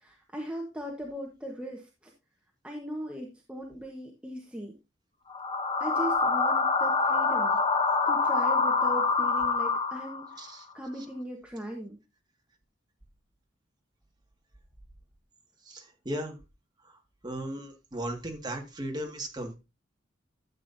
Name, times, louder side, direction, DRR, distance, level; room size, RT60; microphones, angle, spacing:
voice 1, 0.0-1.8 2.6-4.7 5.8-7.6 8.1-10.2 10.7-12.0, right 1 dB, 5° right, 0 dB, 1.2 m, -38 dB
sound 1, 5.3-10.4, left 4 dB, 30° left, 0.9 m, -26 dB
voice 2, 15.7-16.4 16.8-17.0 17.2-19.6, right 1 dB, 20° right, 2 dB, 1.9 m, -36 dB
12.0 x 7.7 x 2.7 m, 0.26 s
head